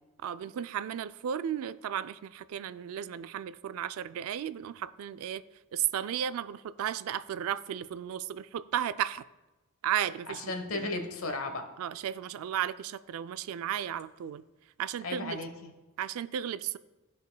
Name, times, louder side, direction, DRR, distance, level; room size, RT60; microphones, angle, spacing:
voice 1, 0.2-5.4 5.7-9.2 9.8-10.9 11.8-14.4 14.8-15.4 16.0-16.8, right 9 dB, 85° right, 0.3 m, -34 dB
voice 2, 10.3-11.7 15.0-15.7, left 2 dB, 80° left, 1.0 m, -35 dB
14.0 x 5.1 x 2.2 m
head